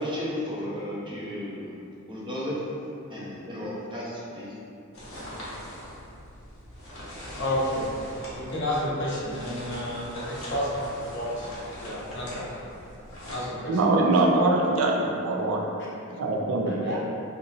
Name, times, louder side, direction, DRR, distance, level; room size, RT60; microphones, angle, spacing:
voice 1, 0.0-1.7 2.1-2.6 3.1-4.5, equal, 25° right, -7 dB, 0.6 m, -33 dB
sound 1, 4.9-13.4, equal, 90° left, 0.9 m, -41 dB
voice 2, 7.3-11.5 11.8-12.5 13.3-14.1 16.7-17.0, equal, 55° left, -6 dB, 0.7 m, -31 dB
voice 3, 13.7-15.6 16.1-17.0, right 2 dB, 70° right, 0 dB, 0.4 m, -23 dB
2.9 x 2.6 x 2.5 m, 2.6 s
head